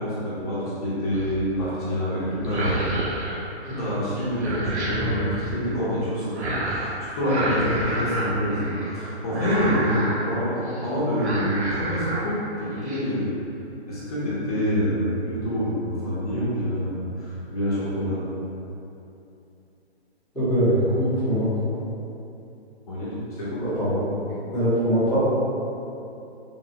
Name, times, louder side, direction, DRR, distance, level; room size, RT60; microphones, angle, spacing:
voice 1, 0.0-2.8 3.7-13.3 13.9-18.3 22.9-23.6, equal, 35° left, -10 dB, 0.8 m, -26 dB
sound 1, 1.1-1.5 2.3-3.9 4.2-5.5 6.3-6.9 7.2-9.0 9.3-10.3 10.7-10.9 11.2-12.2 12.6-13.0, right 2 dB, 90° right, 0.7 m, -29 dB
voice 2, 20.3-21.5 23.6-24.0 24.5-25.2, equal, ahead, -19 dB, 0.8 m, -22 dB
3.2 x 2.1 x 2.7 m, 2.8 s
hypercardioid pair, 150°, 33 cm